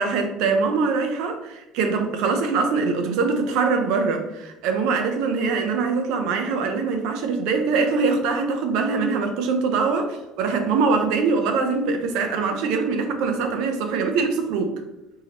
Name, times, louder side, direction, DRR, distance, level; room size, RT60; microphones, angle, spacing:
voice 1, 0.0-14.7, right 4 dB, 75° right, 5 dB, 0.6 m, -23 dB
4.7 x 2.7 x 2.9 m, 0.98 s
cardioid pair, 165°, 0 cm